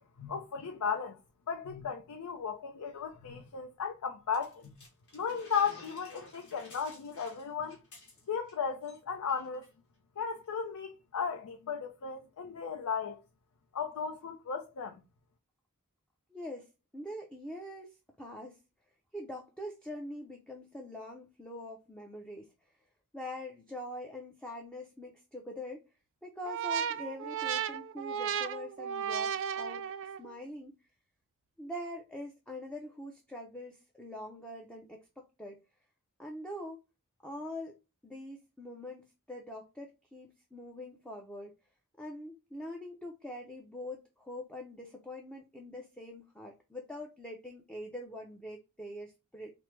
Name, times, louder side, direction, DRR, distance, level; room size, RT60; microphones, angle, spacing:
voice 1, 0.2-1.2 1.5-4.8 5.1-7.8 8.3-9.6 10.2-13.2 13.7-15.0, left 6 dB, 90° left, 0.5 m, -35 dB
sound 1, 4.3-8.6 8.8-9.0 9.3-9.7, left 1 dB, 55° left, 1.5 m, -54 dB
voice 2, 16.3-16.7 16.9-18.6 19.1-22.5 23.1-25.9 26.2-29.8 30.2-30.8 31.6-35.6 36.2-36.8 37.2-37.7 38.0-41.5 42.0-49.5, left 1 dB, 5° left, 0.4 m, -44 dB
sound 2, 26.4-30.3, right 8 dB, 60° right, 0.3 m, -34 dB
4.4 x 2.0 x 3.2 m
head